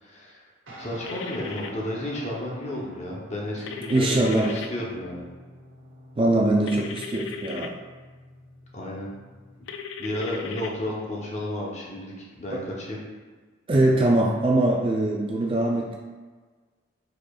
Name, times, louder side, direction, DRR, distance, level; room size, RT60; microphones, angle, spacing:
voice 1, 0.0-0.4 0.8-5.2 8.7-9.1 10.0-13.0, left 1 dB, 35° left, -4 dB, 0.9 m, -32 dB
Guitar, 0.7-9.6, equal, 80° right, 1.0 m, -47 dB
sound 1, 1.0-1.7 3.7-4.7 6.7-7.7 9.7-10.7, left 6 dB, 70° left, 0.3 m, -37 dB
voice 2, 3.9-4.5 6.2-7.7 12.5-12.6 13.7-16.0, right 2 dB, 25° right, -1 dB, 0.4 m, -22 dB
4.9 x 4.3 x 2.4 m, 1.4 s
head